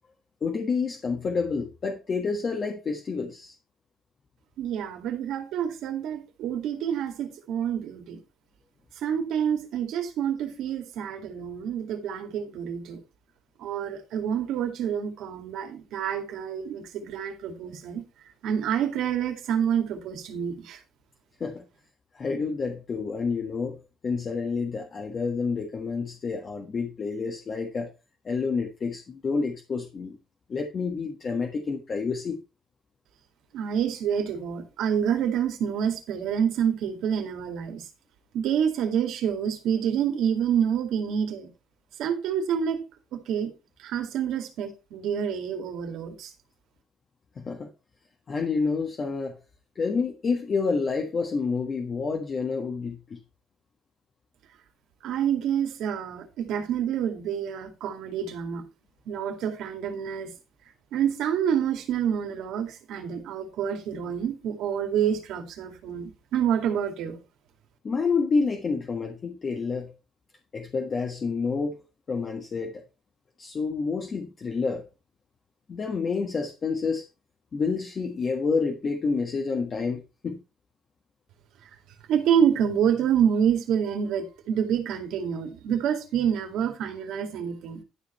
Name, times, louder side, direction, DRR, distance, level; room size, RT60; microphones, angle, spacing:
voice 1, 0.4-3.5 21.4-21.6 22.1-27.9 28.2-30.2 30.5-32.4 47.4-47.7 48.3-49.4 49.7-53.2 67.8-69.9 70.5-71.8 72.1-72.8 73.4-74.9 75.7-77.0 77.5-80.4, left 4 dB, 40° left, 1.4 m, -29 dB
voice 2, 4.6-8.2 9.0-13.0 13.6-18.0 18.4-20.8 33.5-37.8 38.3-41.5 42.0-42.8 43.1-43.5 43.8-46.3 55.0-58.6 59.1-60.3 60.9-67.2 82.1-87.8, right 8 dB, 80° right, 2.2 m, -27 dB
11.5 x 5.1 x 4.4 m
cardioid pair, 115°, 0 cm